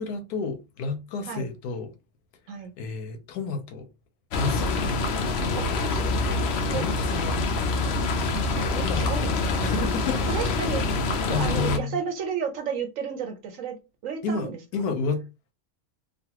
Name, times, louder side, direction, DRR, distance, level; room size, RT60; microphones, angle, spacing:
voice 1, 0.0-1.9 2.8-3.9 4.3-4.7 5.4-6.3 6.7-7.4 8.8-9.2 9.6-10.5 11.3-12.0 14.2-15.2, left 4 dB, 85° left, 1.2 m, -31 dB
sound 1, 4.3-11.8, left 3 dB, 70° left, 0.6 m, -26 dB
voice 2, 6.0-6.3 6.7-6.8 8.3-8.5 8.7-9.8 10.3-10.9 11.3-13.8 14.0-14.9, right 6 dB, 65° right, 0.9 m, -33 dB
3.1 x 2.3 x 2.8 m
omnidirectional pair, 1.6 m